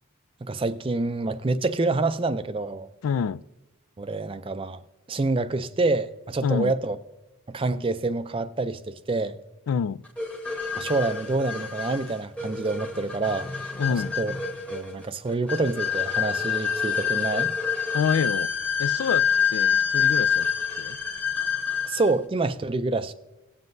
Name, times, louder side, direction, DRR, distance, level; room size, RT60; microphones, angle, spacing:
voice 1, 0.4-2.9 4.0-4.8 5.1-7.0 7.5-9.4 10.8-13.5 14.2-14.3 14.7-17.5 21.8-23.1, right 3 dB, 25° right, 0.4 m, -27 dB
voice 2, 3.0-3.4 6.4-6.7 9.7-10.0 13.8-14.2 17.9-18.5 18.8-20.5 20.8-21.0, left 6 dB, 70° left, 0.3 m, -27 dB
sound 1, 10.2-22.1, left 7 dB, 5° left, 0.9 m, -27 dB
18.0 x 7.6 x 2.6 m
head